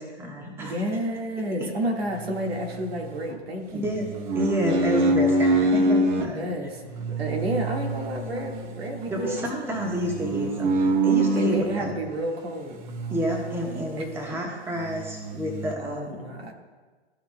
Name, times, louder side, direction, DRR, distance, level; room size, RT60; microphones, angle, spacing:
voice 1, 0.0-0.8 1.6-1.7 3.7-4.1 4.3-6.5 9.1-11.9 13.1-16.1, equal, 5° right, 0 dB, 1.2 m, -29 dB
voice 2, 0.6-3.9 6.3-9.7 11.3-12.8 14.0-14.1 15.8-16.5, equal, 65° right, 2 dB, 1.7 m, -31 dB
sound 1, 2.2-3.4 3.9-6.3 6.9-11.9 12.8-14.0 14.3-14.4 14.8-15.7, right 2 dB, 45° right, 1.0 m, -26 dB
14.0 x 5.6 x 2.2 m, 1.4 s
hypercardioid pair, 120°, 33 cm